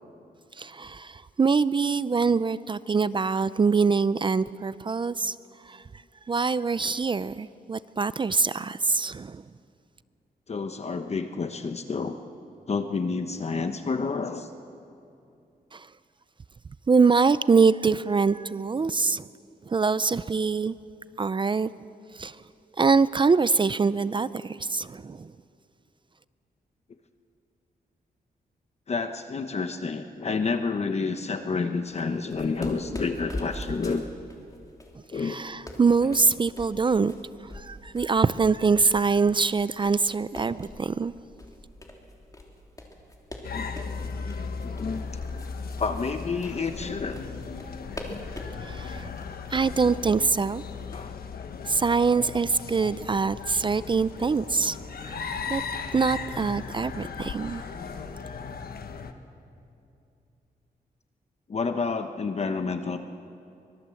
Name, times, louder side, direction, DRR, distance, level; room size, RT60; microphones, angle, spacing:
voice 1, 0.6-5.4 5.6-5.8 6.3-9.4 15.7-15.9 16.9-19.3 19.7-20.7 21.2-21.7 22.1-22.4 22.8-25.3 35.1-37.1 37.4-41.1 48.6-49.1 49.5-50.6 51.6-54.8 55.0-55.6 55.9-57.7, right 4 dB, 30° right, 0.5 m, -24 dB
voice 2, 10.5-12.2 12.7-14.5 28.9-34.1 35.1-35.5 43.5-43.8 44.6-45.1 45.8-47.2 49.2-49.4 50.9-51.1 61.5-63.0, left 4 dB, 40° left, 1.1 m, -29 dB
sound 1, 31.9-51.0, left 1 dB, 20° left, 3.4 m, -43 dB
sound 2, 43.4-59.1, left 5 dB, 75° left, 1.5 m, -37 dB
24.5 x 21.5 x 7.8 m
cardioid pair, 100°, 16 cm